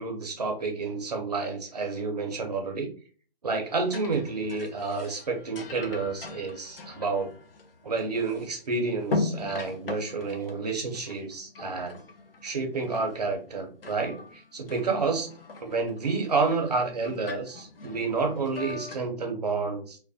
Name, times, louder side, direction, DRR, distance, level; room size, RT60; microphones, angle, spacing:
voice 1, 0.0-2.9 3.4-7.3 7.8-12.0 12.4-15.3 15.6-20.0, right 4 dB, 40° right, 3 dB, 0.5 m, -29 dB
sound 1, 3.7-8.7 9.0-12.5 12.8-13.5 13.8-19.0, left 3 dB, 65° left, 0.6 m, -39 dB
2.3 x 2.1 x 2.5 m, 0.40 s
hypercardioid pair, 160°, 31 cm